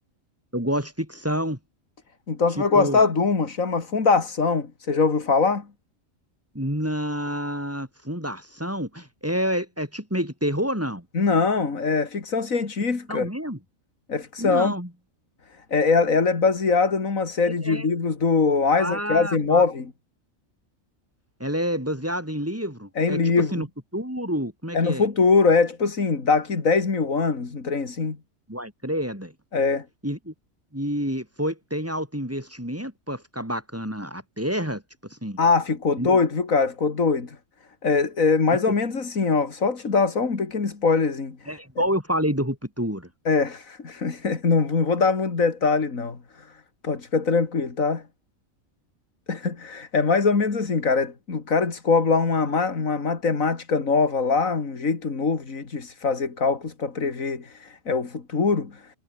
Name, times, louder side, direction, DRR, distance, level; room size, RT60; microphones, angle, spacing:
voice 1, 0.5-1.6 2.6-3.1 6.5-11.1 13.1-13.6 14.4-14.9 17.4-17.9 18.8-19.6 21.4-23.7 23.9-25.1 28.5-29.3 30.0-30.3 30.7-34.8 35.1-35.4 36.0-36.2 38.7-38.8 41.5-43.1, equal, 10° right, 5.7 m, -28 dB
voice 2, 2.3-5.7 11.1-13.3 14.1-14.7 15.7-19.9 23.0-23.6 24.7-28.2 29.5-29.8 35.4-37.4 37.8-41.6 43.3-46.5 46.8-48.0 49.3-58.8, left 4 dB, 80° left, 3.0 m, -22 dB
omnidirectional pair, 1.4 m